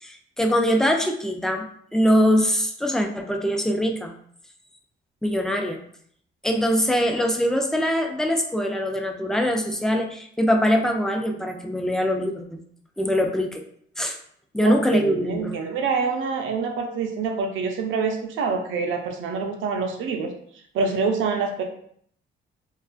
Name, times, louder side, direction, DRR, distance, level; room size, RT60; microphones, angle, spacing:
voice 1, 0.0-1.7 1.9-4.1 5.2-5.8 6.4-12.6 13.0-13.6 14.0-14.2 14.5-15.6, equal, 5° left, 3 dB, 0.3 m, -23 dB
voice 2, 14.6-20.3 20.7-21.6, right 5 dB, 75° right, 3 dB, 0.5 m, -26 dB
2.4 x 2.3 x 2.4 m, 0.64 s
cardioid pair, 90°, 20 cm